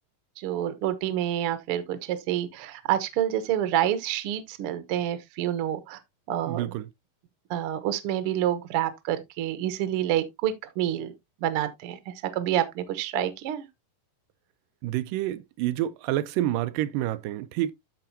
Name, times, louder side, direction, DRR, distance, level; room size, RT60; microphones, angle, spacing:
voice 1, 0.4-6.0 6.3-6.6 7.5-11.1 11.4-12.0 12.3-13.6, right 11 dB, 60° right, 1.5 m, -28 dB
voice 2, 6.5-6.9 14.8-17.7, right 13 dB, 85° right, 2.3 m, -28 dB
13.5 x 4.8 x 2.8 m
omnidirectional pair, 3.9 m